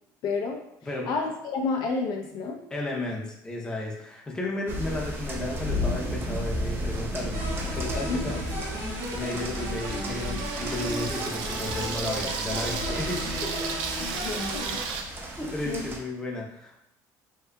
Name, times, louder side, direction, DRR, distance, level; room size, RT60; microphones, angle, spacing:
voice 1, 0.2-0.6 1.1-2.6 8.1-8.2 14.0-14.8 15.7-15.8, left 4 dB, 60° left, 1 dB, 0.5 m, -30 dB
voice 2, 0.8-1.1 2.7-7.4 7.7-8.4 9.1-13.5 15.4-16.8, left 2 dB, 10° left, -2 dB, 0.6 m, -33 dB
sound 1, 4.7-16.0, equal, 30° right, 0.5 m, -33 dB
sound 2, 7.3-14.8, equal, 65° right, 1.4 m, -35 dB
Water tap faucet / Sink (filling or washing), 8.0-15.0, right 5 dB, 80° right, 0.4 m, -35 dB
3.6 x 2.7 x 2.2 m, 0.83 s
cardioid pair, 125°, 8 cm